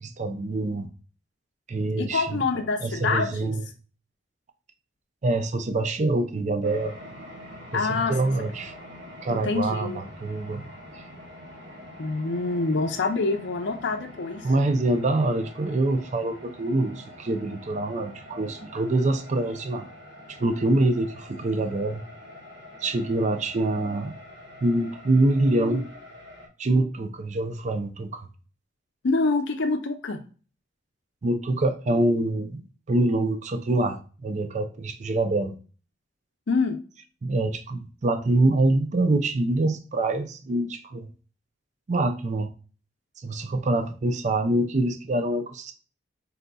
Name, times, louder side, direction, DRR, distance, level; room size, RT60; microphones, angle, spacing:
voice 1, 0.0-0.9 1.7-2.4 2.8-3.6 5.2-6.9 7.7-8.7 9.2-10.7 14.4-19.9 20.3-22.0 22.8-24.1 24.6-25.9 26.6-28.3 31.2-35.6 37.2-41.1 41.9-42.5 43.2-45.7, right 2 dB, 40° right, 0.4 m, -25 dB
voice 2, 2.0-3.5 7.7-8.1 9.3-10.0 12.0-14.5 29.0-30.2 36.5-36.8, left 3 dB, 70° left, 0.6 m, -26 dB
sound 1, 6.6-26.5, left 1 dB, 70° right, 1.2 m, -45 dB
4.0 x 3.9 x 2.3 m
head